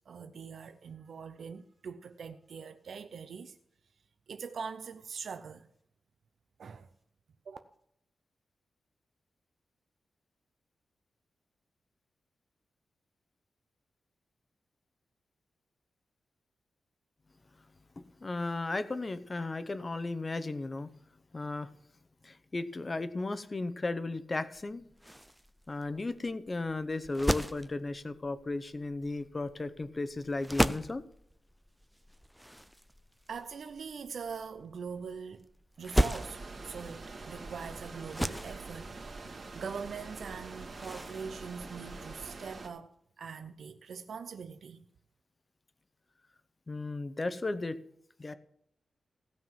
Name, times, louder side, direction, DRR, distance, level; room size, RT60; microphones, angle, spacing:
voice 1, 0.1-3.6 4.3-5.7 6.6-6.9 7.5-7.6 33.3-35.5 35.8-38.9 39.3-44.9, right 6 dB, 65° right, 0.6 m, -42 dB
voice 2, 18.0-20.9 21.3-21.7 22.2-24.8 25.7-31.0 46.7-47.8 48.2-48.3, left 2 dB, 25° left, 0.8 m, -35 dB
sound 1, 24.5-42.5, equal, ahead, 0.4 m, -37 dB
sound 2, 36.0-42.7, right 3 dB, 45° right, 2.1 m, -45 dB
16.5 x 5.8 x 7.3 m
wide cardioid pair, 170°, 0 cm